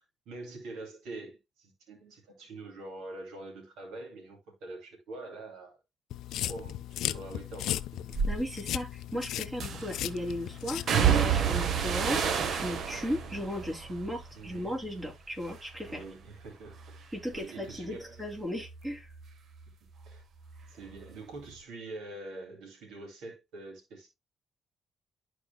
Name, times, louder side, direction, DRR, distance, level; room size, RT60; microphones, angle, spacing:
voice 1, 0.3-5.8 6.5-8.1 14.3-14.8 15.9-18.2 20.0-20.2 20.7-24.1, right 2 dB, 90° right, 2.5 m, -45 dB
sound 1, 6.1-11.2, left 12 dB, 85° left, 0.4 m, -36 dB
sound 2, 8.1-8.4 9.6-10.1 10.9-15.1 15.4-16.1 16.4-19.7 20.0-21.1 21.4-21.5, right 7 dB, 60° right, 0.9 m, -31 dB
voice 2, 8.3-16.0 17.1-19.1, equal, 20° right, 3.1 m, -36 dB
12.0 x 4.7 x 2.2 m
cardioid pair, 90°, 0 cm